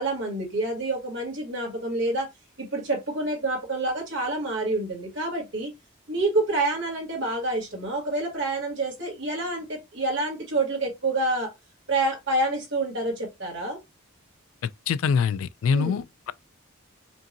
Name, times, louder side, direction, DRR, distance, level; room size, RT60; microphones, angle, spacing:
voice 1, 0.0-2.3 2.6-5.7 6.1-11.5 11.9-13.8 15.7-16.0, right 2 dB, 55° right, 2.1 m, -27 dB
voice 2, 14.6-16.3, left 6 dB, 70° left, 0.3 m, -25 dB
5.2 x 2.7 x 2.6 m
head